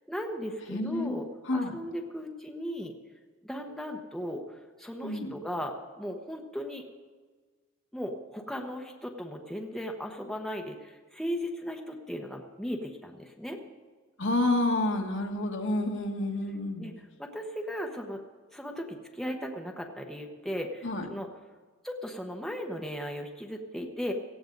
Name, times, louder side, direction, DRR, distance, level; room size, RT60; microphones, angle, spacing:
voice 1, 0.1-1.2 1.5-2.9 3.4-6.9 7.9-13.6 16.8-16.9 17.2-18.2 18.5-21.3 21.8-24.1, equal, ahead, 1 dB, 1.0 m, -37 dB
voice 2, 0.7-1.2 1.5-1.7 5.0-5.3 14.2-16.9 20.8-21.1, left 2 dB, 60° left, 3 dB, 1.6 m, -29 dB
18.0 x 15.0 x 3.9 m, 1.5 s
head